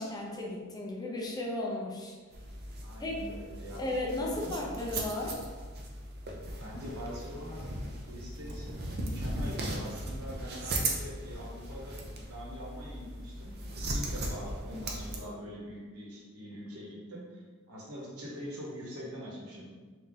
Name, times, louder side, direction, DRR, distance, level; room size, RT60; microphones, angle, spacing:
voice 1, 0.0-2.1 3.0-3.2 3.8-5.4, left 1 dB, 20° left, -2 dB, 0.6 m, -35 dB
sound 1, 2.3-15.2, right 1 dB, 45° right, 0.6 m, -38 dB
voice 2, 2.8-3.9 4.3-4.6 6.3-7.7 8.0-13.6 13.9-19.8, equal, 80° right, -4 dB, 1.1 m, -44 dB
3.7 x 2.7 x 3.8 m, 1.5 s
head